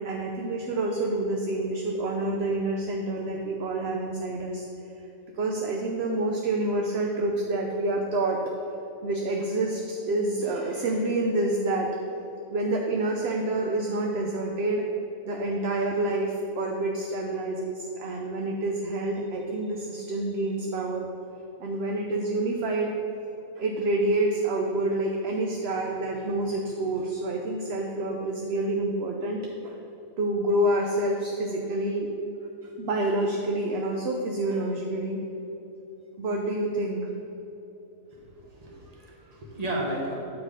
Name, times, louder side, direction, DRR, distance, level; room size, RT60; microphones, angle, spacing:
voice 1, 0.0-4.6 5.4-8.5 9.0-11.9 12.5-14.8 15.2-21.1 21.6-22.9 23.6-29.7 30.2-32.1 32.8-35.2 36.2-37.0, right 2 dB, 60° right, 1 dB, 0.7 m, -28 dB
voice 2, 38.1-40.2, right 1 dB, 30° right, -2 dB, 1.2 m, -34 dB
7.9 x 4.7 x 4.9 m, 3.0 s
omnidirectional pair, 1.5 m